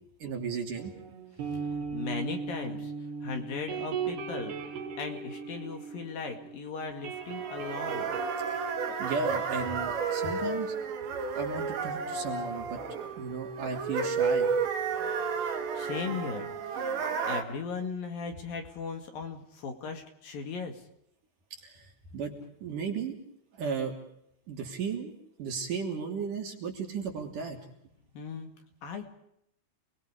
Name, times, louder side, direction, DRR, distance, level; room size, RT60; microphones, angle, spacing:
voice 1, 0.2-0.9 9.0-10.7 11.3-12.8 13.2-14.5 21.6-22.3 22.6-23.1 23.5-23.9 24.5-25.1 25.4-27.6, right 5 dB, 50° right, 2 dB, 4.3 m, -35 dB
sound 1, 0.8-6.6 6.8-10.3, right 6 dB, 70° right, 5.4 m, -38 dB
voice 2, 1.9-2.9 3.2-4.5 5.0-8.1 15.0-15.1 15.8-16.9 17.3-20.8 28.1-28.5 28.8-29.1, left 5 dB, 60° left, 5 dB, 3.7 m, -37 dB
sound 2, 7.1-17.4, right 5 dB, 90° right, 4.7 m, -32 dB
30.0 x 21.0 x 5.1 m, 0.74 s
omnidirectional pair, 4.9 m